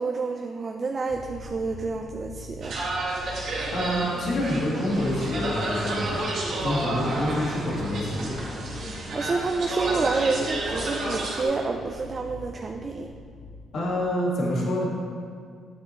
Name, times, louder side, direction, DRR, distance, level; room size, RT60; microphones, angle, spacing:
voice 1, 0.0-2.8 9.1-13.1, right 4 dB, 35° right, 4 dB, 0.4 m, -28 dB
sound 1, 1.1-13.5, left 1 dB, ahead, 1.1 m, -42 dB
sound 2, 2.6-11.5, right 2 dB, 60° right, 1.8 m, -31 dB
voice 2, 3.7-6.2 6.6-8.4 13.7-14.8, left 1 dB, 60° left, -4 dB, 1.9 m, -27 dB
9.3 x 7.5 x 3.1 m, 2.1 s
cardioid pair, 90°, 0 cm